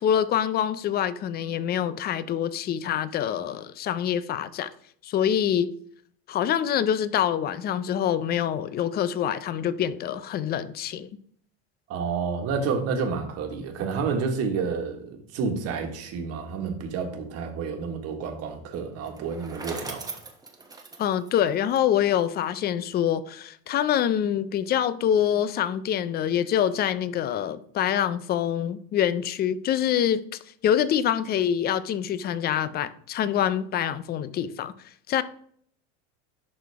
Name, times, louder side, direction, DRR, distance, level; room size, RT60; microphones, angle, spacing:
voice 1, 0.0-4.7 5.0-5.7 6.3-11.1 21.0-30.2 30.6-34.7 35.1-35.2, left 9 dB, 30° left, 0.4 m, -25 dB
voice 2, 11.9-20.2, right 5 dB, 50° right, 1.5 m, -30 dB
Bicycle, 19.0-22.2, right 3 dB, 10° right, 1.0 m, -40 dB
11.0 x 4.1 x 3.4 m
supercardioid pair, 135°, 32 cm